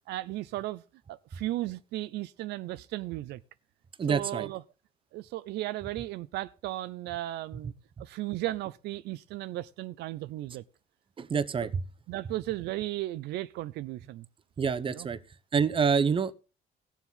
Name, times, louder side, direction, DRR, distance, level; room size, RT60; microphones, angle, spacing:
voice 1, 0.1-0.8 1.1-3.4 4.1-4.6 5.1-7.7 8.0-10.6 11.6-11.7 12.1-14.3 14.9-15.1, right 16 dB, 80° right, 0.6 m, -35 dB
voice 2, 4.0-4.5 11.2-11.7 14.6-15.2 15.5-16.3, right 6 dB, 30° right, 0.9 m, -26 dB
17.5 x 7.2 x 3.8 m
cardioid pair, 110°, 17 cm